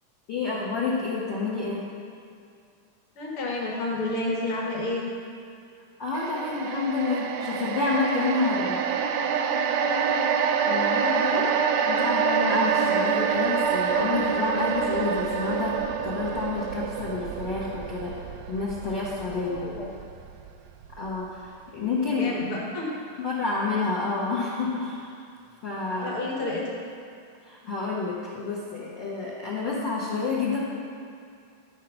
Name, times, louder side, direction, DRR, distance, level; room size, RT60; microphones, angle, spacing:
voice 1, 0.3-1.8 6.0-8.8 10.7-11.6 11.8-15.8 16.0-18.1 18.5-19.6 21.0-22.4 23.2-25.1 25.6-26.2 27.4-30.6, left 4 dB, 70° left, -6 dB, 1.1 m, -29 dB
voice 2, 3.2-5.0 9.8-10.1 19.3-19.9 22.2-22.9 26.0-26.7, left 2 dB, 50° left, -3 dB, 2.0 m, -30 dB
sound 1, 6.1-20.5 20.8-21.0, right 6 dB, 80° right, 1.6 m, -26 dB
12.0 x 4.6 x 6.0 m, 2.4 s
omnidirectional pair, 3.5 m